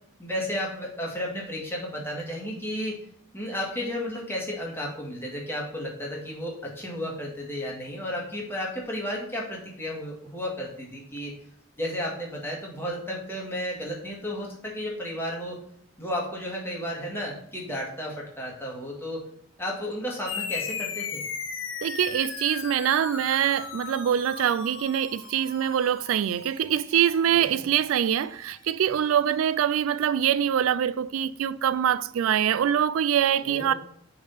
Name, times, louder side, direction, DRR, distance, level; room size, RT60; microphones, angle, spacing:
voice 1, 0.2-3.0 3.3-11.4 11.8-15.6 16.0-19.2 19.6-21.2 27.3-27.7 33.4-33.7, equal, 10° left, 1.8 m, -33 dB
sound 1, 20.3-29.1, left 6 dB, 60° left, 0.8 m, -38 dB
voice 2, 21.8-33.7, right 9 dB, 85° right, 0.3 m, -24 dB
6.4 x 3.6 x 5.6 m
head